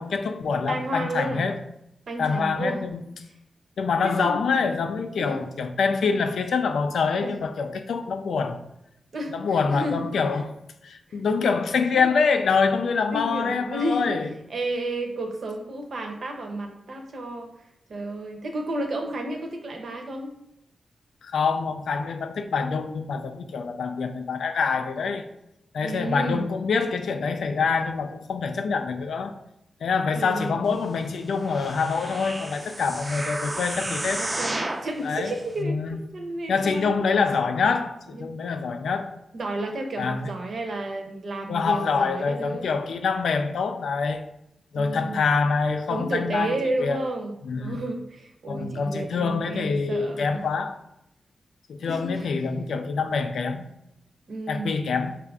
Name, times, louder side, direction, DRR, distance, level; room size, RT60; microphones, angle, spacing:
voice 1, 0.0-1.6 2.2-3.0 3.8-8.6 9.3-10.5 10.8-14.3 21.2-25.2 25.7-29.3 29.8-34.2 35.0-35.3 35.6-36.0 36.5-39.2 40.0-40.3 41.5-44.3 44.7-47.0 47.4-47.8 48.5-50.8 51.7-53.7 54.5-55.2, left 5 dB, 85° left, 0.3 m, -25 dB
voice 2, 0.7-1.4 2.1-2.8 4.0-4.4 5.2-5.4 7.2-7.3 9.1-10.0 10.3-10.4 11.1-11.2 11.9-12.1 13.1-14.1 14.5-17.5 17.9-20.3 25.8-26.4 30.1-30.7 34.2-37.0 38.1-38.3 39.3-42.7 44.7-45.2 45.9-50.4 51.8-52.3 54.3-54.7, right 1 dB, 60° right, 0.7 m, -31 dB
sound 1, 31.4-34.9 35.5-35.6, right 1 dB, 25° right, 0.4 m, -32 dB
4.5 x 2.5 x 3.4 m
wide cardioid pair, 105°, 0 cm